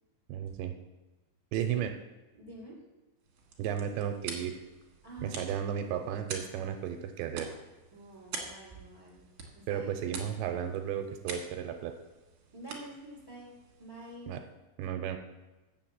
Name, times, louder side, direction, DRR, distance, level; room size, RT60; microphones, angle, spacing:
voice 1, 0.3-0.7 1.5-1.9 3.6-4.6 5.2-7.5 9.7-11.9 14.3-14.4 14.8-15.2, right 9 dB, 85° right, 6 dB, 2.8 m, -34 dB
voice 2, 2.3-2.7 5.0-5.5 7.9-9.3 9.5-10.1 12.5-13.5 13.8-14.4, right 1 dB, 5° left, -4 dB, 2.1 m, -47 dB
sound 1, 3.2-14.4, right 4 dB, 55° right, 1.9 m, -46 dB
7.8 x 7.0 x 7.5 m, 1.1 s
omnidirectional pair, 5.5 m